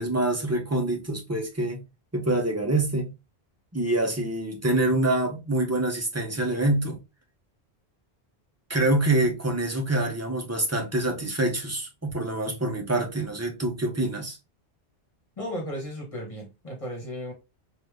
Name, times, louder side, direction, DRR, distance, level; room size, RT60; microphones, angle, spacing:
voice 1, 0.0-1.8 2.1-3.1 3.7-7.0 8.7-14.4, right 2 dB, 15° right, 0.7 m, -26 dB
voice 2, 15.4-17.3, equal, 30° left, 1.3 m, -35 dB
3.2 x 2.6 x 3.2 m
omnidirectional pair, 1.1 m